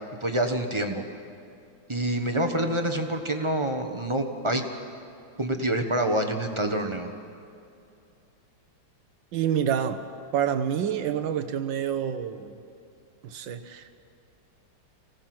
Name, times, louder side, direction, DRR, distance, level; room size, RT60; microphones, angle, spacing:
voice 1, 0.2-1.0 1.9-4.6 5.4-7.1, right 1 dB, 20° right, 5 dB, 0.8 m, -27 dB
voice 2, 9.3-10.0 10.3-12.5 13.2-13.9, right 8 dB, 75° right, 10 dB, 1.7 m, -27 dB
25.5 x 17.5 x 6.0 m, 2.5 s
omnidirectional pair, 2.1 m